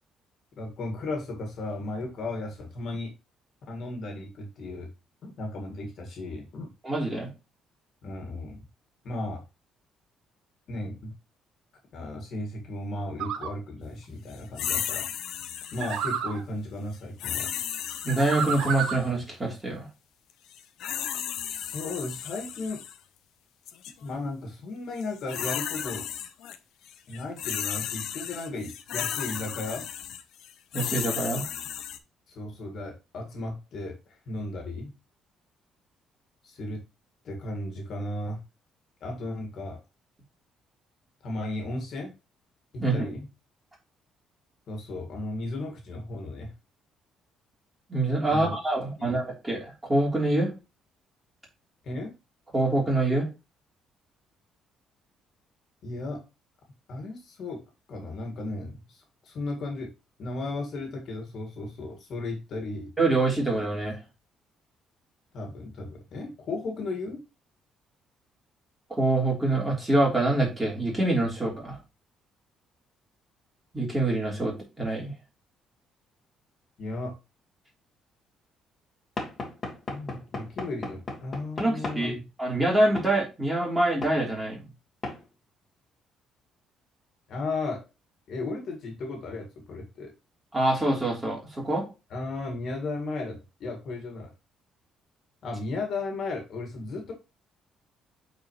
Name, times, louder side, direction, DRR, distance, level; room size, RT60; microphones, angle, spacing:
voice 1, 0.6-3.1 3.7-4.9 5.2-6.7 8.0-8.6 9.0-9.4 10.7-11.1 11.9-15.1 15.7-17.5 21.5-22.8 24.0-26.1 27.1-29.9 32.3-34.0 34.3-34.9 36.4-36.8 37.2-38.4 39.0-39.8 41.2-42.1 42.7-43.3 44.7-46.5 48.3-48.6 49.0-49.2 51.8-52.1 55.8-56.2 56.9-57.6 57.9-59.9 60.2-62.9 65.3-67.2 76.8-77.2 79.9-82.2 87.3-87.8 88.3-90.1 92.1-94.3 95.4-97.1, left 2 dB, 55° left, 3 dB, 2.0 m, -35 dB
voice 2, 6.8-7.3 18.0-19.9 30.7-31.4 42.8-43.1 47.9-50.5 52.5-53.3 63.0-64.0 68.9-71.8 73.7-75.1 81.6-84.7 90.5-91.9, right 2 dB, 15° right, -3 dB, 3.5 m, -25 dB
sound 1, 13.2-13.5 15.8-16.4 18.1-19.1, right 7 dB, 80° right, 1.3 m, -30 dB
sound 2, 14.6-16.2 17.2-19.1 20.5-22.9 23.7-23.9 25.0-26.6 26.9-32.0, left 10 dB, 75° left, 0.7 m, -34 dB
Knock / Wood, 79.2-82.1 83.0-83.1 84.0-84.2 85.0-85.2, left 3 dB, 30° left, 1.9 m, -36 dB
8.5 x 4.4 x 3.1 m, 0.27 s
cardioid pair, 130°, 0 cm